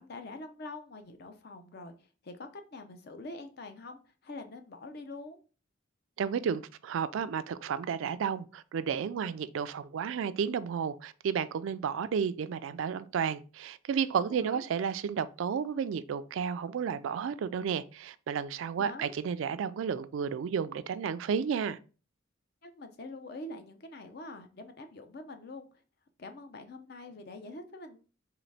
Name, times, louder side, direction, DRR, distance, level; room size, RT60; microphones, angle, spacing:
voice 1, 0.0-1.9 2.2-5.4 14.3-14.6 18.8-19.1 22.6-25.7 26.2-28.0, left 2 dB, 50° left, 0.6 m, -45 dB
voice 2, 6.2-21.8, right 7 dB, 75° right, 0.3 m, -32 dB
3.9 x 3.1 x 3.3 m
head